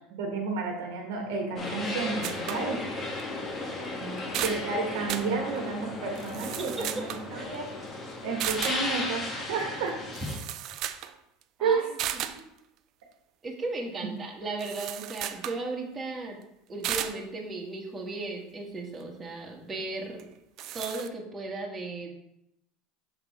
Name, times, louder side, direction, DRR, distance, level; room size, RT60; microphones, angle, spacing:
voice 1, 0.2-2.8 4.4-7.6 8.2-10.0 11.6-11.9, right 4 dB, 75° right, 1 dB, 1.2 m, -31 dB
sound 1, 1.6-10.4, left 2 dB, 35° left, 1.4 m, -35 dB
sound 2, 2.2-2.6 3.2-3.3 3.8-3.9 4.2-4.6 5.1-5.3 6.1-7.3 8.4-8.8 9.9-10.0 10.1-11.1 11.4-11.5 12.0-12.4 14.6-15.6 16.8-17.2 20.2-20.3 20.6-21.1, right 11 dB, 55° right, 0.4 m, -34 dB
voice 2, 4.0-4.5 6.6-7.0 11.6-11.8 13.4-16.4 16.7-20.2 20.7-22.1, right 2 dB, 20° right, -1 dB, 1.6 m, -36 dB
6.0 x 3.7 x 4.6 m, 0.82 s
hypercardioid pair, 90°, 0 cm